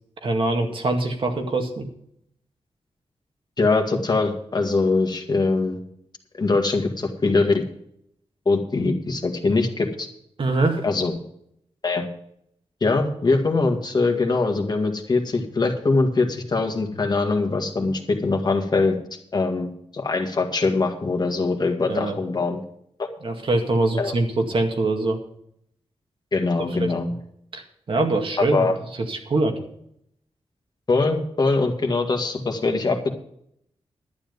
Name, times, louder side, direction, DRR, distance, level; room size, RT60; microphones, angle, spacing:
voice 1, 0.2-1.9 10.4-10.8 21.9-22.2 23.2-25.2 26.7-26.9 27.5-28.7 29.1-29.6, right 2 dB, 55° right, 3 dB, 2.1 m, -23 dB
voice 2, 3.6-5.8 6.4-7.6 8.5-10.1 10.8-11.1 11.8-12.1 12.8-19.0 19.3-22.6 23.0-23.1 24.0-24.1 26.3-27.1 28.4-28.8 30.9-33.1, left 3 dB, 40° left, 4 dB, 1.9 m, -22 dB
11.5 x 10.0 x 5.3 m, 0.71 s
wide cardioid pair, 125°, 10 cm